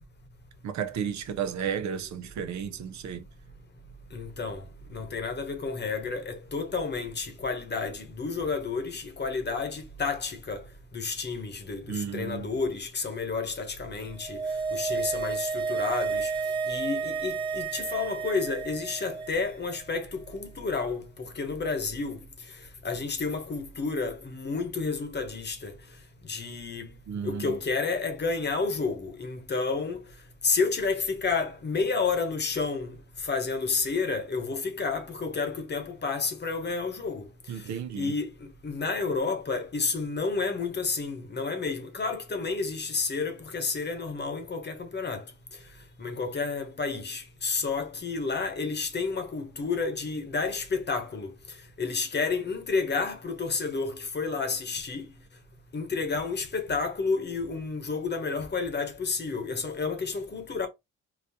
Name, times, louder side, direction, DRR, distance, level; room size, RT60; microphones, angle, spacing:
voice 1, 0.6-3.3 11.9-12.5 27.1-27.5 37.5-38.1, right 7 dB, 70° right, 0.7 m, -33 dB
voice 2, 4.1-4.6 4.9-10.6 10.9-14.4 14.7-16.3 16.7-22.2 22.8-25.7 26.3-26.9 27.2-30.0 30.4-33.0 33.2-37.2 37.9-38.3 38.6-45.2 46.0-51.3 51.8-55.1 55.7-60.7, left 4 dB, 35° left, 1.0 m, -30 dB
sound 1, 14.1-19.5 19.8-19.9, right 5 dB, 15° right, 1.0 m, -31 dB
4.0 x 2.3 x 2.8 m
cardioid pair, 90°, 30 cm